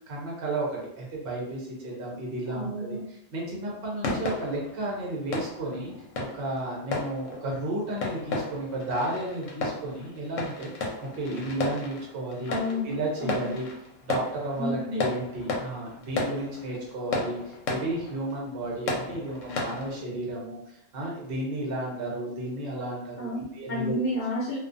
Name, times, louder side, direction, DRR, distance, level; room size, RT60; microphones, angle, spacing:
voice 1, 0.1-3.0 3.3-5.9 6.2-10.7 11.0-12.5 12.8-13.7 14.1-24.0, right 1 dB, 55° right, -3 dB, 0.8 m, -33 dB
voice 2, 2.5-3.0 12.5-13.5 14.6-15.0 23.2-23.4 23.7-24.6, left 1 dB, 45° left, -9 dB, 0.8 m, -30 dB
sound 1, 4.0-20.0, left 2 dB, 85° left, 1.0 m, -34 dB
2.4 x 2.3 x 2.5 m, 0.74 s
omnidirectional pair, 1.3 m